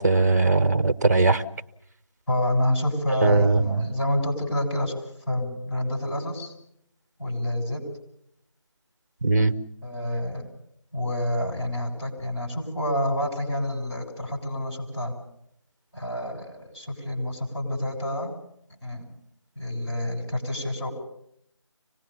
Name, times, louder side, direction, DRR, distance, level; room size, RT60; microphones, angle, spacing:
voice 1, 0.0-1.4 3.2-3.6 9.2-9.5, right 3 dB, 35° right, 10 dB, 0.9 m, -19 dB
voice 2, 2.3-6.5 7.2-7.9 9.8-10.5 10.9-15.1 15.9-18.3 18.8-19.1 19.6-20.9, left 1 dB, 55° left, 2 dB, 7.3 m, -28 dB
25.5 x 18.5 x 7.0 m, 0.71 s
figure-of-eight pair, 165°, 16 cm